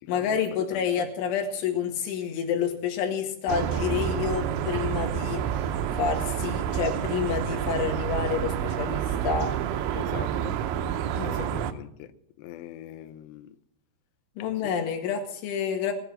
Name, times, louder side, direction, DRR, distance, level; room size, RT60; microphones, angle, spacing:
voice 1, 0.1-9.5 11.1-11.6 14.4-15.9, left 7 dB, 70° left, 4.1 m, -29 dB
voice 2, 0.7-1.1 9.9-10.6 11.2-12.1 12.4-13.6 14.6-14.7, left 12 dB, 85° left, 2.5 m, -42 dB
sound 1, 3.5-11.7, right 9 dB, 80° right, 3.0 m, -29 dB
19.0 x 8.1 x 7.2 m
omnidirectional pair, 5.9 m